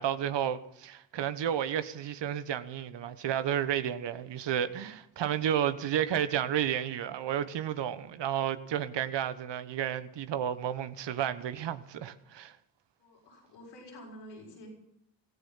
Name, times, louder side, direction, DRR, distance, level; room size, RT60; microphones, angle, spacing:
voice 1, 0.0-12.5, right 10 dB, 70° right, 1.2 m, -32 dB
voice 2, 13.0-14.7, equal, 90° left, 6.6 m, -49 dB
16.0 x 15.0 x 5.8 m
supercardioid pair, 45°, 44 cm